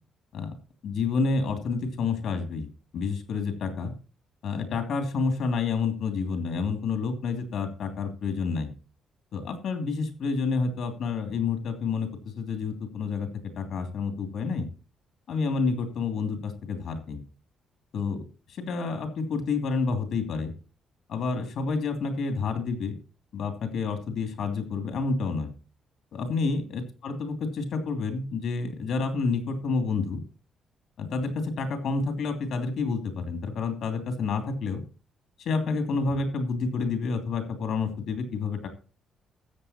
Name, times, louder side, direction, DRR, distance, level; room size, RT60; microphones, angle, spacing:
voice 1, 0.8-2.7 2.9-3.9 4.4-8.7 9.3-12.1 12.4-13.3 13.6-14.7 15.3-17.2 17.9-18.2 18.5-20.5 21.1-23.0 23.3-25.5 26.1-30.2 31.0-34.8 35.4-38.7, left 4 dB, 70° left, 7 dB, 2.8 m, -29 dB
13.5 x 8.0 x 4.3 m, 0.34 s
cardioid pair, 90°, 0 cm